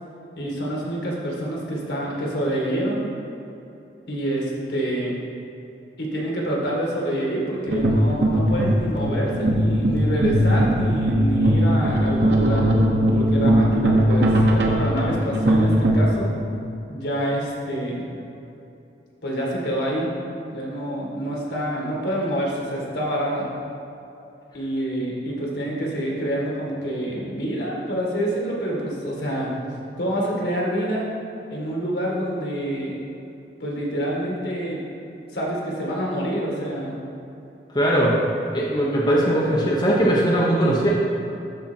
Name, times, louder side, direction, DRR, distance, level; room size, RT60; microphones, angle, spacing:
voice 1, 0.4-3.1 4.1-5.1 6.0-12.7 13.1-16.3 16.9-18.1 19.2-20.1 20.5-23.5 24.5-29.5 30.0-31.1 31.5-33.0 33.6-34.8 35.3-37.0, right 1 dB, 75° left, -3 dB, 1.9 m, -27 dB
sound 1, 7.7-16.1, equal, 85° right, 1.1 m, -19 dB
voice 2, 37.7-38.2 38.5-40.9, right 1 dB, 25° left, -5 dB, 1.0 m, -20 dB
13.0 x 4.6 x 4.5 m, 2.8 s
head